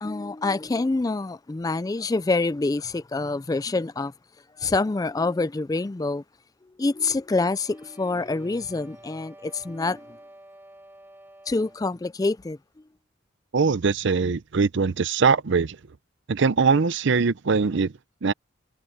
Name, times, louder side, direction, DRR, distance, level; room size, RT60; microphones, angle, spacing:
voice 1, 0.0-4.1 4.6-6.2 6.8-10.2 11.5-12.6, left 3 dB, 15° left, 0.3 m, -26 dB
sound 1, 7.3-12.0, right 1 dB, 10° right, 3.0 m, -50 dB
voice 2, 13.5-15.8 16.3-17.9 18.2-18.3, right 5 dB, 60° right, 0.5 m, -22 dB
head